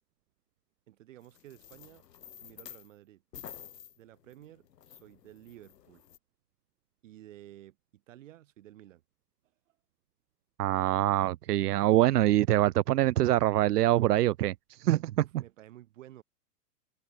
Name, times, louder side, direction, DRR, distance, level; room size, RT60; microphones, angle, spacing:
voice 1, 0.9-2.0 2.4-3.2 4.0-6.0 7.0-9.0 15.2-16.2, right 13 dB, 50° right, 6.3 m, -53 dB
sound 1, 1.2-2.9 3.3-6.2, left 10 dB, 85° left, 1.8 m, -50 dB
voice 2, 10.6-15.2, right 14 dB, 75° right, 0.6 m, -25 dB
open air
hypercardioid pair, 155°, 48 cm